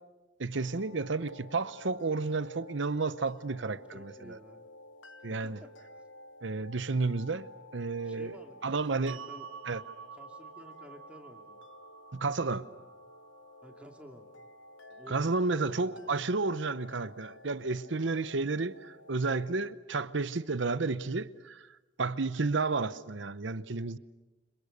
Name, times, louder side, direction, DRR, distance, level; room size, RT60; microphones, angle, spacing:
voice 1, 0.4-4.4 5.2-5.6 6.4-7.5 7.7-8.3 8.6-9.2 9.7-9.8 12.2-12.6 15.1-21.7 22.0-24.0, right 3 dB, 70° right, 0.8 m, -31 dB
sound 1, 0.5-19.7, left 2 dB, 75° left, 1.1 m, -53 dB
voice 2, 3.6-4.7 5.3-6.0 8.0-9.5 10.1-11.6 13.6-14.3 14.9-16.2, equal, 5° right, 2.6 m, -52 dB
sound 2, 9.1-15.3, right 7 dB, 85° right, 1.6 m, -50 dB
30.0 x 26.5 x 6.7 m
head